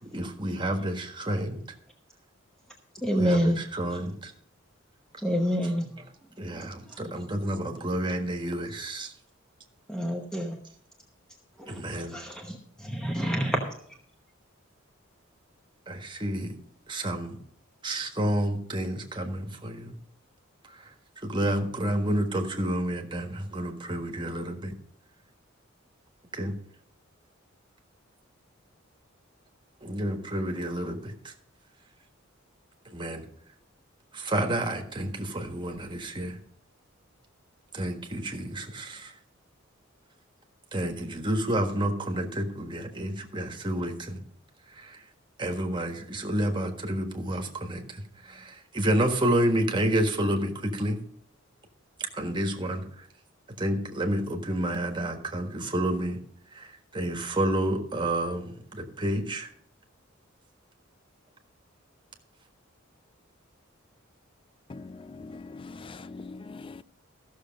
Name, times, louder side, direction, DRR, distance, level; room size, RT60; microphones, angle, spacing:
voice 1, 0.0-1.6 3.2-4.3 6.4-9.1 11.7-12.2 15.9-16.6 16.9-17.4 17.8-19.9 20.6-24.7 26.3-26.6 29.8-31.3 32.8-33.3 34.1-36.4 37.7-39.1 40.7-44.2 44.7-45.0 45.4-51.0 52.0-53.1 53.6-56.2 56.5-59.5, right 1 dB, 25° right, 1.5 m, -30 dB
voice 2, 3.0-3.6 5.2-5.8 6.5-7.1 9.9-10.6 11.6-13.7, equal, 5° left, 1.0 m, -28 dB
voice 3, 64.7-66.8, left 3 dB, 25° left, 0.4 m, -42 dB
14.5 x 6.6 x 5.2 m
head